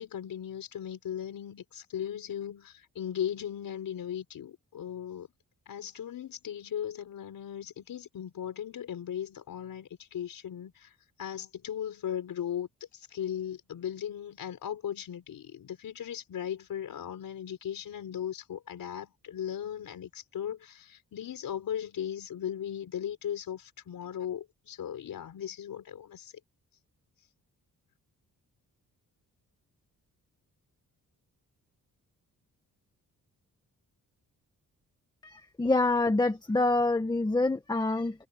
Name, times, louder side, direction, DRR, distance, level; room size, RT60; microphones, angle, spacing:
voice 1, 0.0-5.3 5.7-10.9 11.2-26.3, left 9 dB, 80° left, 4.6 m, -37 dB
voice 2, 35.2-38.3, left 2 dB, 10° left, 1.5 m, -26 dB
wide cardioid pair, 165°, 34 cm